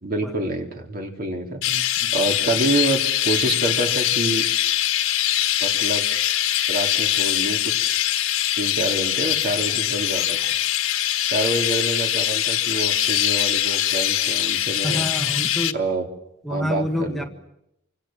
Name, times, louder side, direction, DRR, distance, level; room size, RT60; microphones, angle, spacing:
voice 1, 0.0-1.6 2.1-4.5 5.6-6.0 6.7-7.6 8.6-10.4 11.3-15.1 15.7-16.1 16.5-17.3, right 2 dB, 45° right, 3 dB, 3.9 m, -27 dB
Chirp tweet, 1.6-15.7, left 12 dB, 90° left, 1.3 m, -22 dB
voice 2, 1.7-2.1 14.8-15.8 16.4-17.2, equal, ahead, 3 dB, 1.5 m, -28 dB
27.5 x 26.0 x 7.4 m, 0.82 s
head